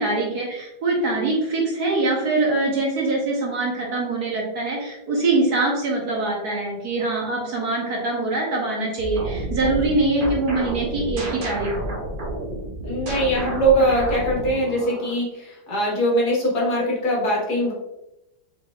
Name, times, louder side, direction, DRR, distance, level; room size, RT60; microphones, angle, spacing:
voice 1, 0.0-11.9, right 2 dB, 60° right, -2 dB, 1.3 m, -23 dB
sound 1, 9.0-15.2, right 1 dB, 85° right, 0.4 m, -30 dB
voice 2, 12.8-17.7, right 1 dB, 55° left, -4 dB, 1.8 m, -22 dB
4.6 x 4.6 x 2.3 m, 0.93 s
omnidirectional pair, 2.2 m